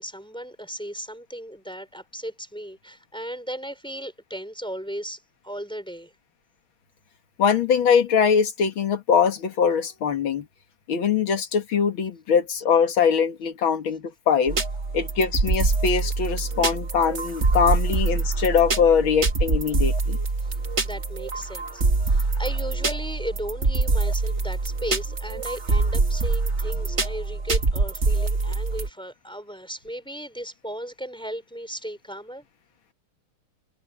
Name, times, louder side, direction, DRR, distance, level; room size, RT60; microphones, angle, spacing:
voice 1, 0.0-6.1 20.8-32.5, equal, ahead, 4.5 m, -36 dB
voice 2, 7.4-10.5 10.9-14.6 14.9-20.2, left 6 dB, 65° left, 2.5 m, -22 dB
sound 1, 14.5-28.9, right 3 dB, 35° right, 1.9 m, -25 dB
omnidirectional pair, 2.4 m